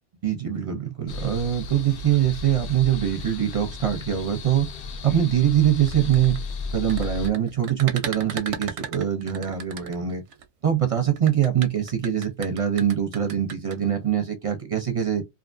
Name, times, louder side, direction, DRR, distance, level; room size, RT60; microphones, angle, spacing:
voice 1, 0.2-4.7 5.0-6.4 6.7-10.2 10.6-15.2, right 10 dB, 40° right, 0.5 m, -23 dB
sound 1, 1.1-7.3, left 4 dB, 65° left, 0.7 m, -34 dB
sound 2, 5.8-10.4 11.2-13.8, right 7 dB, 85° right, 0.9 m, -36 dB
2.5 x 2.4 x 2.5 m
omnidirectional pair, 1.2 m